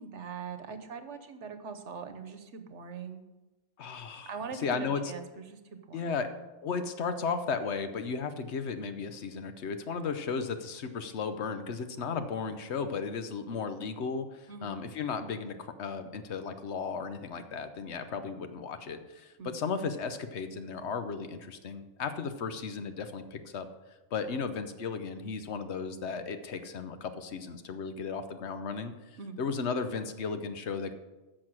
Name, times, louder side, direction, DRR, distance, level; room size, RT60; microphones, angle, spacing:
voice 1, 0.0-3.2 4.3-6.5 14.5-14.7 19.4-19.6 29.2-29.4, right 5 dB, 75° right, 9 dB, 1.3 m, -42 dB
voice 2, 3.8-5.1 5.9-6.3 6.6-23.7 24.1-28.9 29.4-30.9, left 5 dB, 70° left, 9 dB, 1.1 m, -35 dB
10.0 x 6.6 x 6.2 m, 1.1 s
omnidirectional pair, 1.2 m